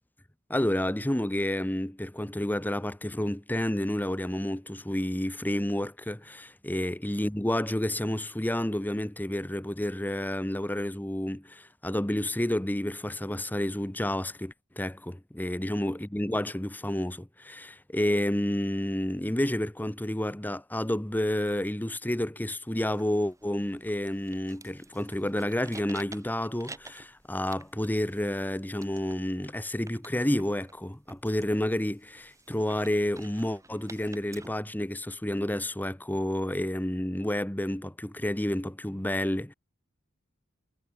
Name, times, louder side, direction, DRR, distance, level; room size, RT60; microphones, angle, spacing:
voice 1, 0.5-39.5, left 1 dB, 10° left, 1.0 m, -30 dB
sound 1, 22.7-34.5, right 3 dB, 15° right, 6.6 m, -51 dB
head